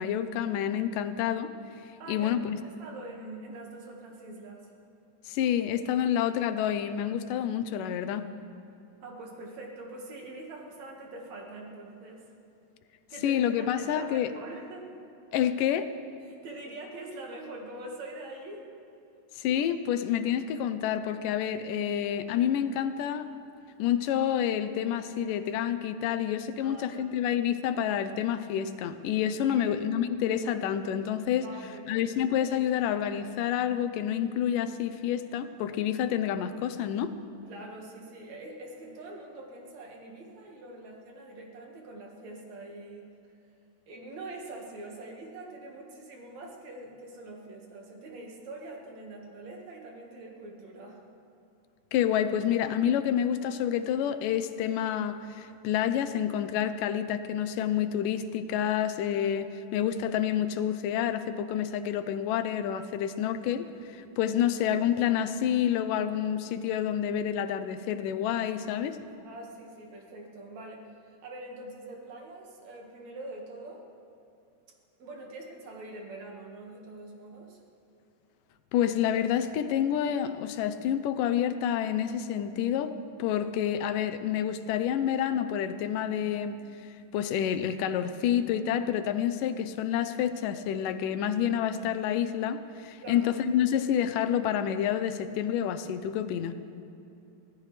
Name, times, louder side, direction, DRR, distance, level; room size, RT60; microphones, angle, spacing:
voice 1, 0.0-1.5 2.1-2.6 5.3-8.3 13.2-14.3 15.3-15.9 19.4-23.3 23.8-31.5 31.9-37.1 51.9-69.0 78.7-82.9 83.2-96.5, left 9 dB, 85° left, 10 dB, 2.3 m, -28 dB
voice 2, 2.0-4.7 9.0-12.2 13.1-14.9 16.2-18.7 26.6-27.2 29.5-29.7 31.4-32.1 37.5-43.1 43.9-51.0 59.7-59.8 69.2-73.9 75.0-77.6 93.0-93.3, right 2 dB, 60° right, -1 dB, 2.9 m, -44 dB
24.0 x 17.0 x 3.3 m, 2.7 s
omnidirectional pair, 3.7 m